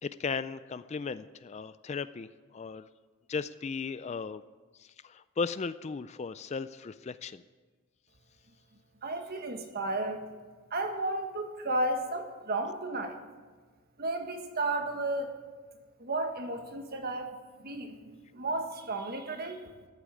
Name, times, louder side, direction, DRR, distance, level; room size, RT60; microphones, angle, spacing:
voice 1, 0.0-2.9 3.3-4.4 4.8-7.4, left 5 dB, 30° left, 14 dB, 0.3 m, -36 dB
voice 2, 9.0-10.2 10.7-13.2 14.0-15.3 16.0-17.4 17.6-19.6, right 2 dB, 45° right, 5 dB, 1.5 m, -33 dB
14.0 x 8.5 x 9.1 m, 1.4 s
head